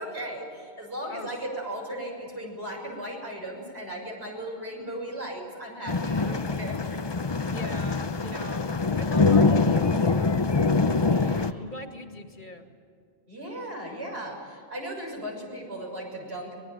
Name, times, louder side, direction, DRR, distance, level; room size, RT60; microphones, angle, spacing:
voice 1, 0.0-7.0 11.0-11.7 13.3-16.6, right 1 dB, 75° right, -1 dB, 7.0 m, -37 dB
sound 1, 5.9-11.5, left 4 dB, 30° left, 0.7 m, -24 dB
voice 2, 7.5-10.4 11.6-12.6, left 1 dB, 50° left, 5 dB, 2.3 m, -41 dB
23.5 x 20.5 x 9.0 m, 2.3 s
omnidirectional pair, 1.1 m